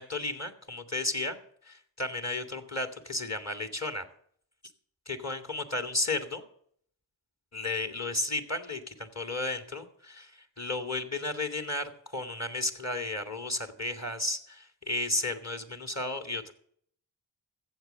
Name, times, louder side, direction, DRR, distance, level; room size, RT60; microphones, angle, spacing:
voice 1, 0.0-1.4 1.6-4.0 5.1-6.4 7.5-16.5, left 2 dB, 30° left, 8 dB, 2.1 m, -33 dB
15.0 x 7.6 x 6.7 m, 0.62 s
cardioid pair, 40°, 48 cm